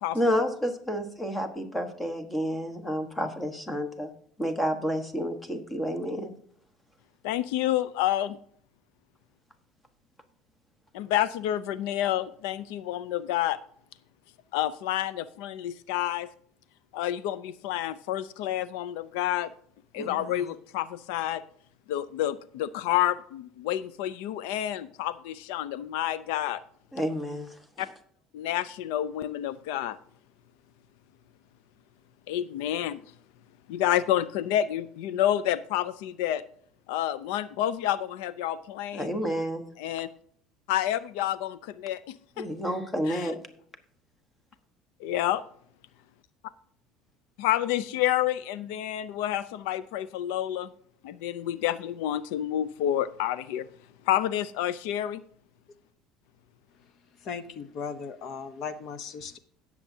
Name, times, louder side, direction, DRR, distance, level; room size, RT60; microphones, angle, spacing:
voice 1, 0.1-4.1 4.4-6.3 20.0-20.4 26.9-27.6 38.9-39.6 42.4-43.4, equal, 10° left, 8 dB, 1.2 m, -30 dB
voice 2, 7.2-8.4 10.9-13.6 14.5-16.3 16.9-19.5 19.9-21.4 21.9-26.6 27.8-27.9 28.3-30.0 32.3-33.0 33.7-36.4 36.9-39.2 39.8-40.1 40.7-42.5 43.1-43.3 45.0-45.4 47.4-50.7 51.0-53.7 54.1-55.2, left 12 dB, 90° left, 17 dB, 0.4 m, -29 dB
voice 3, 57.2-59.4, left 6 dB, 50° left, 13 dB, 0.8 m, -37 dB
17.5 x 7.2 x 2.7 m, 0.63 s
cardioid pair, 150°, 0 cm